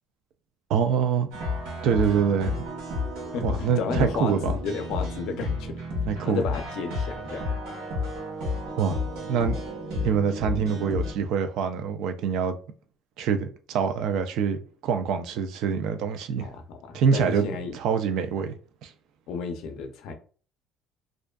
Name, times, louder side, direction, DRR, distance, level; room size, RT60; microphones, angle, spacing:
voice 1, 0.7-1.3 1.8-2.6 3.4-4.5 6.1-6.4 8.8-9.0 9.3-9.6 10.0-12.6 13.2-16.5 16.9-17.5 17.7-18.5 18.8-18.9, right 6 dB, 65° right, 0.3 m, -25 dB
sound 1, 1.3-11.1, left 3 dB, 90° right, 1.1 m, -31 dB
voice 2, 3.3-5.7 6.2-7.5 16.4-17.8 19.3-20.1, left 5 dB, 70° left, 0.5 m, -32 dB
2.5 x 2.3 x 2.2 m
cardioid pair, 165°, 0 cm